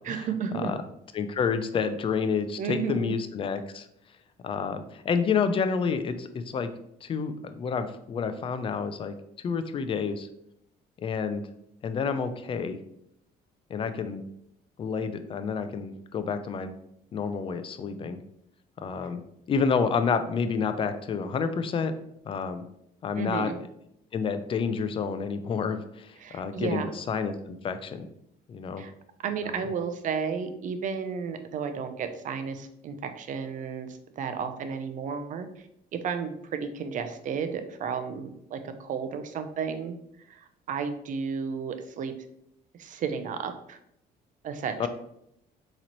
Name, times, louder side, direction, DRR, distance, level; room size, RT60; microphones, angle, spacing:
voice 1, 0.1-0.7 2.6-3.1 23.2-23.6 26.2-26.9 28.8-28.9 29.2-33.9 34.2-35.5 36.0-39.9 40.3-42.1 42.8-43.8 44.4-44.9, right 6 dB, 50° right, 8 dB, 0.5 m, -32 dB
voice 2, 1.1-3.9 4.4-6.7 7.0-9.1 9.4-10.3 11.0-11.4 11.8-12.8 13.7-14.2 14.8-16.7 17.1-18.2 18.8-19.2 19.5-21.9 22.3-22.6 23.0-23.5 24.1-28.1 28.5-28.8 29.4-29.6 44.8-44.9, left 5 dB, 30° left, 10 dB, 0.4 m, -29 dB
3.9 x 3.0 x 2.9 m, 0.77 s
cardioid pair, 110°, 17 cm